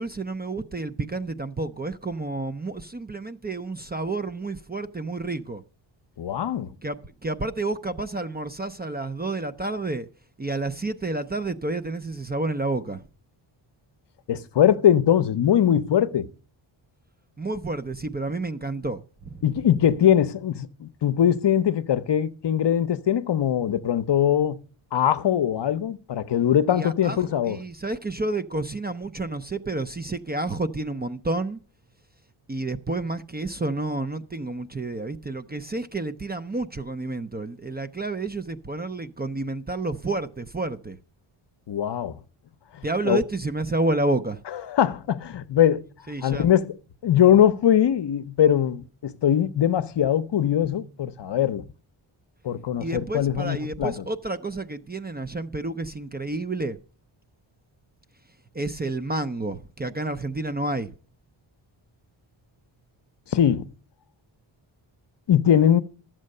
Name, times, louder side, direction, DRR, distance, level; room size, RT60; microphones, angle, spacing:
voice 1, 0.0-5.6 6.8-10.1 10.4-13.0 17.4-19.0 19.3-19.4 26.7-27.2 27.5-31.6 32.5-41.0 42.8-44.4 46.1-46.5 52.8-56.8 58.5-60.9, right 2 dB, 20° right, 0.5 m, -30 dB
voice 2, 6.2-6.7 14.3-16.3 19.4-24.6 24.9-27.6 41.7-42.1 43.0-43.2 44.5-45.8 46.2-46.7 47.0-51.6 52.4-54.0 63.3-63.7 65.3-65.8, left 10 dB, 60° left, 0.7 m, -21 dB
12.0 x 7.6 x 6.5 m
wide cardioid pair, 125°, 49 cm